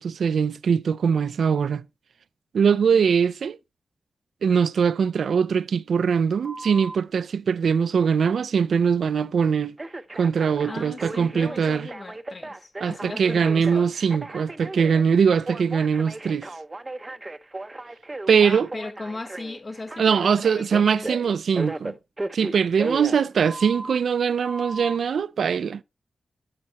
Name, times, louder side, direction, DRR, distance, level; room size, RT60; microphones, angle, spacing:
voice 1, 0.0-1.8 2.5-3.6 4.4-9.8 10.2-11.9 12.8-16.5 18.3-18.7 20.0-21.9 22.3-25.8, right 6 dB, 85° right, 0.4 m, -22 dB
voice 2, 2.7-3.1 10.7-13.9 18.4-21.1, left 3 dB, 40° left, 1.1 m, -38 dB
Telephone, 6.4-7.0 9.8-24.0 24.4-25.0, right 2 dB, 25° right, 0.7 m, -36 dB
9.7 x 7.5 x 2.9 m
cardioid pair, 80°, 0 cm